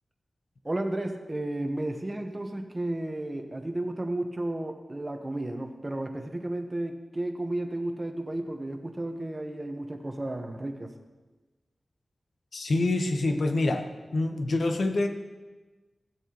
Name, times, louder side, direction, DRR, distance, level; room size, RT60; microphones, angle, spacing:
voice 1, 0.6-10.9, right 1 dB, 25° right, 5 dB, 1.0 m, -33 dB
voice 2, 12.5-15.1, left 2 dB, 75° left, 6 dB, 0.9 m, -26 dB
15.0 x 7.9 x 3.0 m, 1.2 s
wide cardioid pair, 75°, 0 cm